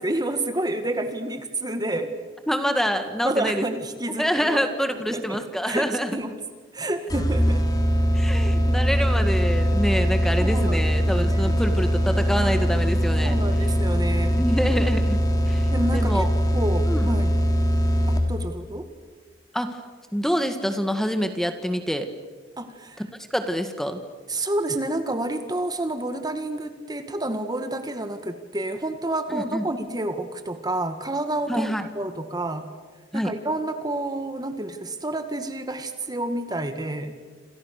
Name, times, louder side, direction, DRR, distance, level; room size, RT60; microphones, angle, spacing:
voice 1, 0.0-2.2 3.2-4.6 5.0-6.4 6.7-7.7 10.4-11.6 13.2-14.4 15.7-16.3 16.5-17.3 18.1-18.9 22.6-23.0 24.3-32.7 33.1-37.2, right 1 dB, 20° right, 8 dB, 1.8 m, -29 dB
voice 2, 2.5-3.7 4.2-6.1 8.1-13.4 14.4-15.2 15.5-16.3 16.9-17.0 19.5-19.8 20.1-22.1 23.0-24.0 29.3-29.7 31.5-31.9 33.1-33.3, equal, ahead, 7 dB, 1.9 m, -26 dB
sound 1, 7.1-18.5, equal, 20° left, 3.5 m, -22 dB
28.0 x 28.0 x 6.7 m, 1.4 s
head